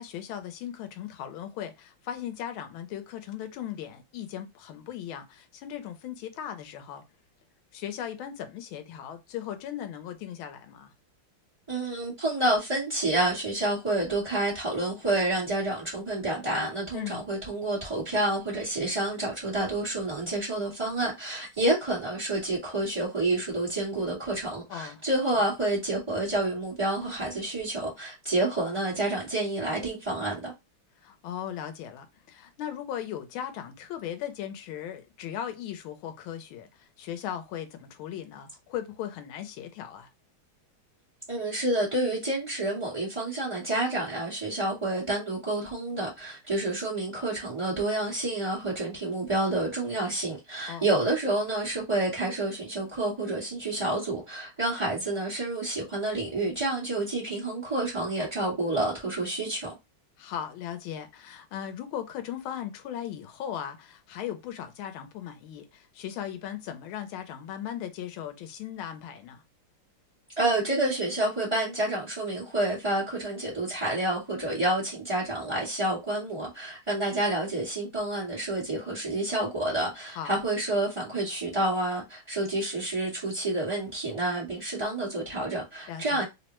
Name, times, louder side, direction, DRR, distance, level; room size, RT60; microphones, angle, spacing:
voice 1, 0.0-7.0 7.7-10.9 16.9-17.2 24.7-25.0 31.0-40.1 50.7-50.9 60.2-69.4 80.1-80.3 85.9-86.2, left 10 dB, 80° left, 1.4 m, -38 dB
voice 2, 11.7-30.5 41.3-59.7 70.4-86.2, right 2 dB, 20° right, 0.8 m, -29 dB
3.5 x 2.1 x 2.9 m
omnidirectional pair, 2.3 m